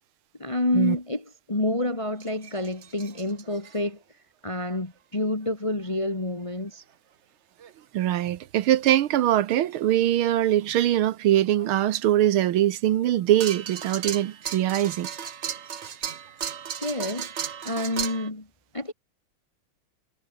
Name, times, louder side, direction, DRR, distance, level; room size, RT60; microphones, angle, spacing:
voice 1, 0.4-4.0 4.4-6.8 16.7-18.5 18.7-18.9, left 1 dB, 15° left, 1.9 m, -28 dB
sound 1, 2.2-3.8 4.6-4.7 6.6-6.7 7.6-7.7 9.5-9.7 10.2-10.3 11.6-11.7 13.4-18.3, right 8 dB, 50° right, 0.9 m, -35 dB
voice 2, 7.9-15.1, right 12 dB, 80° right, 1.8 m, -22 dB
omnidirectional pair, 2.3 m